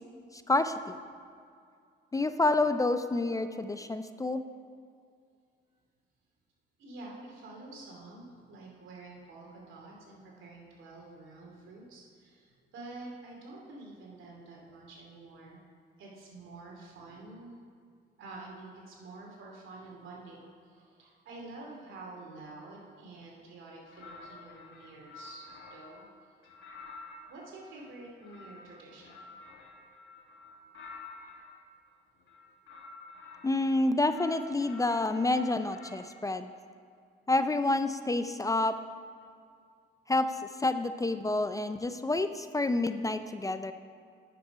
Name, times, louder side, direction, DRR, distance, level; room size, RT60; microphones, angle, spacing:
voice 1, 0.3-1.0 2.1-4.4 33.4-36.5 37.3-38.8 40.1-40.3 40.6-43.7, left 2 dB, 15° left, 10 dB, 0.4 m, -28 dB
voice 2, 6.8-15.6 16.0-17.6 18.2-26.1 27.3-29.3, right 2 dB, 80° right, -2 dB, 2.5 m, -48 dB
sound 1, 23.9-26.0 26.4-31.5 32.2-33.8 34.1-36.1, left 3 dB, 70° left, 1.8 m, -50 dB
9.5 x 6.1 x 5.6 m, 2.3 s
cardioid pair, 90°, 20 cm